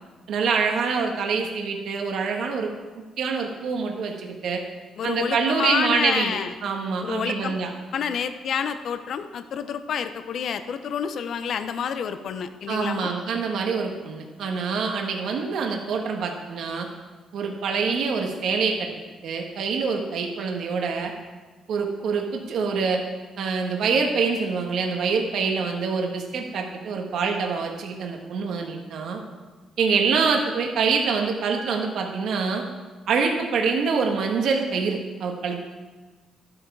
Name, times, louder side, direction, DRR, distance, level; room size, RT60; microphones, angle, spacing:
voice 1, 0.3-2.7 3.2-4.6 5.0-6.4 6.6-7.7 12.7-16.9 17.3-18.9 19.2-21.1 21.7-23.0 23.4-29.2 29.8-32.6 33.1-35.6, right 5 dB, 75° right, 2 dB, 1.4 m, -25 dB
voice 2, 5.0-6.5 7.0-7.6 7.9-13.2, left 7 dB, 65° left, 10 dB, 0.7 m, -28 dB
12.0 x 8.6 x 4.7 m, 1.3 s
cardioid pair, 90°, 0 cm